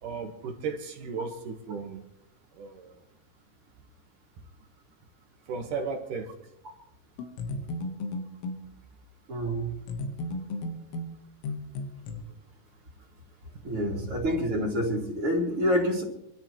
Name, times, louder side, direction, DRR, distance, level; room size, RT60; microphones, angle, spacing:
voice 1, 0.0-2.0 2.6-3.0 5.5-6.3, right 5 dB, 65° right, 3 dB, 2.2 m, -35 dB
sound 1, 7.2-8.7 9.9-12.2, left 2 dB, 85° left, 3.9 m, -35 dB
voice 2, 9.3-9.8 13.6-16.0, equal, 35° right, -2 dB, 3.0 m, -27 dB
26.0 x 13.0 x 3.1 m, 0.81 s
omnidirectional pair, 5.4 m